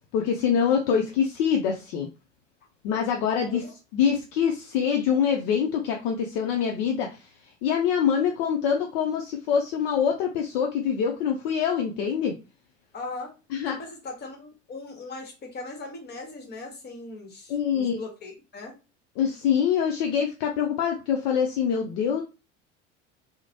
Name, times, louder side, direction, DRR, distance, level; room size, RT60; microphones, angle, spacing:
voice 1, 0.1-2.1 2.8-3.6 3.9-7.2 7.6-12.3 13.5-13.8 17.5-18.0 19.2-22.2, left 7 dB, 55° left, 0.6 m, -25 dB
voice 2, 12.9-13.3 13.7-18.8, left 3 dB, 25° left, 1.0 m, -39 dB
2.9 x 2.1 x 2.7 m
figure-of-eight pair, 70°, 37 cm